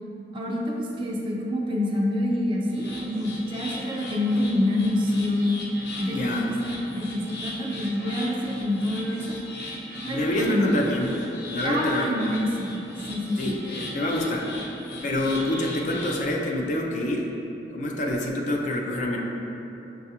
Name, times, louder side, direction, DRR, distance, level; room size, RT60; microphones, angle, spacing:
voice 1, 0.3-5.6 6.0-9.4 10.1-10.7 11.6-12.8 13.1-13.6, left 1 dB, 30° right, -2 dB, 0.4 m, -27 dB
sound 1, 2.7-16.2, left 1 dB, 75° left, 0.7 m, -38 dB
voice 2, 6.1-6.5 10.0-11.2 11.5-12.3 13.4-14.5 15.0-17.3 17.7-19.2, left 1 dB, 45° left, 0 dB, 0.4 m, -27 dB
6.4 x 2.3 x 2.7 m, 3.0 s
head